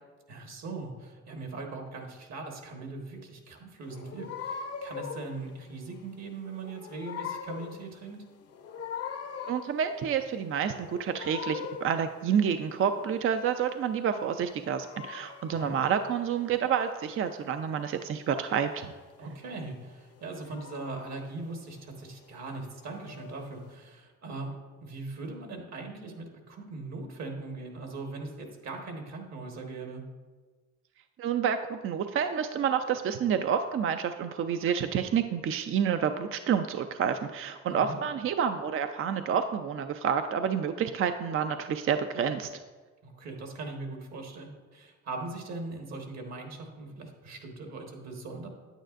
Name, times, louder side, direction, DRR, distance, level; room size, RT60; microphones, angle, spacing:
voice 1, 0.3-8.2 15.5-15.7 19.2-24.5 24.8-30.0 37.7-38.0 43.0-48.5, right 3 dB, 60° right, 2 dB, 1.6 m, -40 dB
sound 1, 3.8-23.7, left 7 dB, 55° left, 0.7 m, -43 dB
voice 2, 9.5-18.9 31.2-42.5, right 7 dB, 45° right, 8 dB, 0.4 m, -29 dB
9.0 x 8.9 x 2.5 m, 1.4 s
cardioid pair, 90°, 30 cm